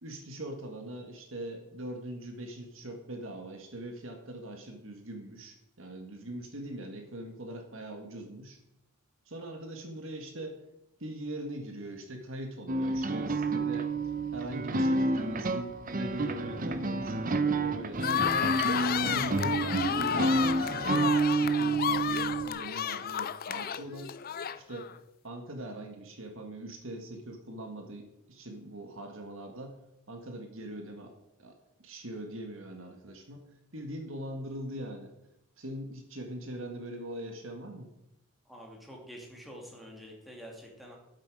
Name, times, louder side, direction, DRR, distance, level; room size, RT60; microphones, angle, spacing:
voice 1, 0.0-8.6 9.3-10.6 11.0-13.9 14.3-18.6 19.0-24.1 24.5-24.9 25.2-29.8 30.1-31.1 31.4-31.6 31.8-33.5 33.7-35.1 35.6-37.9, right 1 dB, 65° right, 4 dB, 1.7 m, -41 dB
sound 1, 12.7-22.5, right 3 dB, 40° right, 0.7 m, -29 dB
sound 2, 18.0-24.9, left 9 dB, 45° left, 0.4 m, -32 dB
voice 2, 38.5-41.0, equal, ahead, -2 dB, 2.5 m, -47 dB
11.5 x 8.0 x 5.0 m, 0.83 s
head